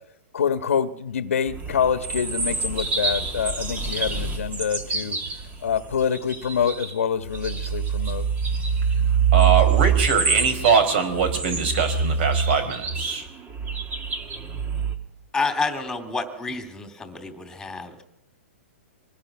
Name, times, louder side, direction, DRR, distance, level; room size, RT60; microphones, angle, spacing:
voice 1, 0.3-5.2 5.6-8.2, left 7 dB, 85° left, 9 dB, 1.5 m, -26 dB
sound 1, 1.5-6.9 7.3-15.0, right 6 dB, 20° right, 2.1 m, -25 dB
voice 2, 9.3-13.3, right 5 dB, 50° right, 10 dB, 4.8 m, -22 dB
voice 3, 15.3-18.1, left 3 dB, 5° left, 7 dB, 3.0 m, -29 dB
25.0 x 19.5 x 6.2 m, 0.85 s
hypercardioid pair, 140°, 7 cm